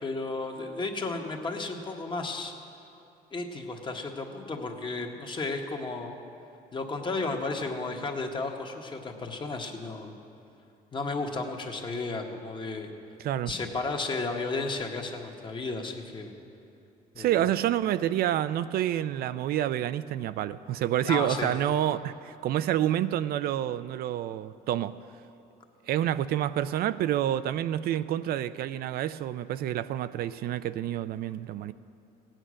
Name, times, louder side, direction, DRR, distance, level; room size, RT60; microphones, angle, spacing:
voice 1, 0.0-2.5 3.3-6.2 6.7-10.1 10.9-12.9 13.5-16.3 17.1-17.4 21.0-21.5, left 3 dB, 30° left, 3 dB, 1.4 m, -33 dB
voice 2, 13.2-13.5 17.2-24.9 25.9-31.7, right 11 dB, 65° right, 13 dB, 0.4 m, -28 dB
16.5 x 9.0 x 6.3 m, 2.7 s
cardioid pair, 110°, 17 cm